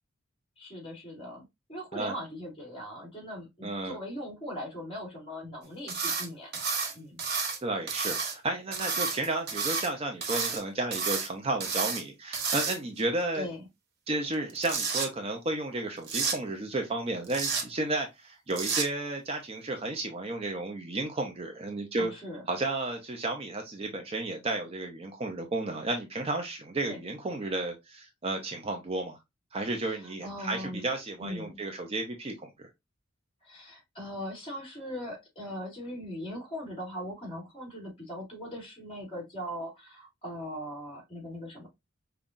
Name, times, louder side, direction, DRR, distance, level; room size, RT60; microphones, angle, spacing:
voice 1, 0.6-7.2 13.3-13.6 22.0-22.4 26.9-27.0 29.9-30.8 31.2-31.6 33.4-41.7, equal, 25° left, 2.0 m, -40 dB
voice 2, 3.6-4.0 7.6-13.5 14.1-22.1 22.5-29.2 29.5-32.7, right 2 dB, 30° right, 0.5 m, -33 dB
sound 1, 5.9-6.3 6.5-7.6 7.9-8.3 8.7-9.9 10.2-10.6 10.9-11.3 11.6-12.0 12.3-13.0 14.3-15.1 16.1-16.4 17.3-17.6 18.5-18.9, right 5 dB, 55° right, 0.8 m, -30 dB
5.3 x 2.3 x 2.4 m
head